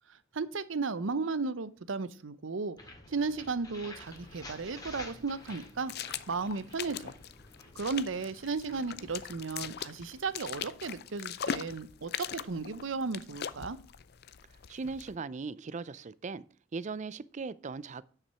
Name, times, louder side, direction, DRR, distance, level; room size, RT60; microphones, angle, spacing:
voice 1, 0.1-2.8 3.1-5.9 6.3-7.1 7.7-13.8, right 4 dB, 75° right, 0.7 m, -35 dB
sound 1, 2.8-12.6, left 2 dB, 20° left, 2.2 m, -52 dB
sound 2, 4.1-15.2, left 8 dB, 55° left, 0.5 m, -42 dB
voice 2, 14.7-16.4 16.7-18.0, right 4 dB, 40° right, 0.4 m, -38 dB
9.8 x 5.9 x 5.7 m
head